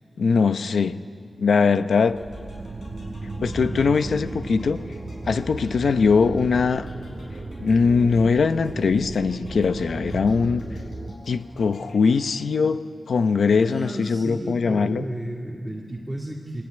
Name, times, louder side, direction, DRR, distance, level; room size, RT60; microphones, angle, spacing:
voice 1, 0.2-1.0 1.4-2.2 3.4-4.8 5.3-6.9 7.6-10.7 11.3-15.0, left 5 dB, 75° left, 0.8 m, -21 dB
sound 1, 2.1-11.1, right 2 dB, 30° right, 1.5 m, -35 dB
sound 2, 2.2-12.8, left 2 dB, 60° left, 6.3 m, -52 dB
voice 2, 13.6-16.6, right 1 dB, 5° right, 2.1 m, -33 dB
29.0 x 21.5 x 9.5 m
wide cardioid pair, 160°, 0 cm